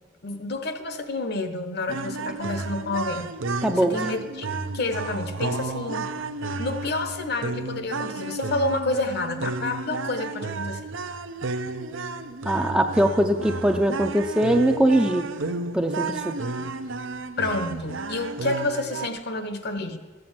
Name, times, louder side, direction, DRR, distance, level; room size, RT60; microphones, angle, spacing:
voice 1, 0.2-3.3 3.7-4.5 4.7-6.1 6.6-10.8 17.4-20.0, left 2 dB, 50° left, 8 dB, 1.0 m, -29 dB
sound 1, 1.9-19.1, right 3 dB, 70° right, 0.7 m, -32 dB
voice 2, 3.6-3.9 12.4-15.3 15.7-16.3, right 1 dB, 5° right, 4 dB, 0.5 m, -21 dB
14.0 x 7.8 x 7.4 m, 1.4 s
head